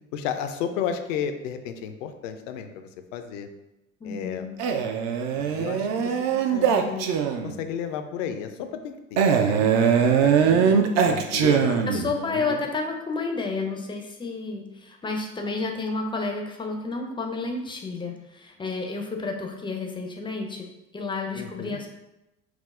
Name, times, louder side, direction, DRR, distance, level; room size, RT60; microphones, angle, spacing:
voice 1, 0.1-3.5 4.0-4.4 5.3-7.1 7.4-10.8 11.1-12.6 21.3-21.8, left 8 dB, 65° left, 8 dB, 0.5 m, -33 dB
voice 2, 4.0-4.5 11.9-21.9, left 3 dB, 10° left, 3 dB, 0.5 m, -31 dB
Male speech man speaking, 4.6-7.6 9.2-12.1, right 7 dB, 40° right, 0.4 m, -21 dB
5.8 x 2.0 x 2.4 m, 0.93 s
figure-of-eight pair, 65°, 42 cm